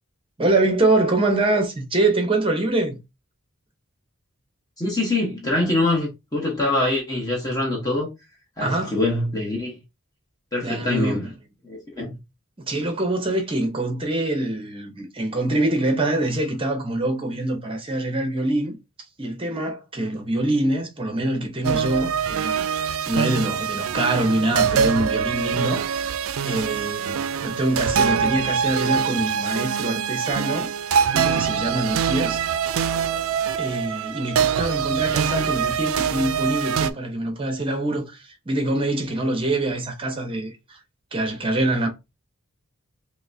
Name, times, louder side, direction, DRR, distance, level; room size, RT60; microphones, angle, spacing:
voice 1, 0.4-3.0 8.6-9.0 10.6-11.2 12.6-18.8 19.2-22.6 23.1-26.1 26.4-30.7 31.1-32.4 33.6-40.8 41.1-41.9, right 2 dB, 25° right, 0.8 m, -24 dB
voice 2, 4.8-8.1 8.6-9.8 10.5-11.3 11.6-12.2, left 2 dB, 15° left, 1.1 m, -24 dB
sound 1, 21.6-36.9, right 7 dB, 75° right, 0.3 m, -24 dB
5.7 x 2.1 x 2.7 m
head